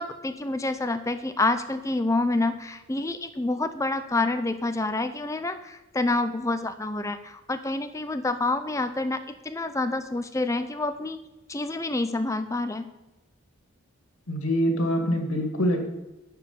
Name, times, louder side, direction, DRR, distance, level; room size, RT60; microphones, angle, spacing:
voice 1, 0.0-11.2 11.5-12.9, left 2 dB, 15° left, 9 dB, 0.5 m, -28 dB
voice 2, 14.3-15.9, equal, 85° left, 4 dB, 2.4 m, -25 dB
12.0 x 4.9 x 8.3 m, 1.0 s
head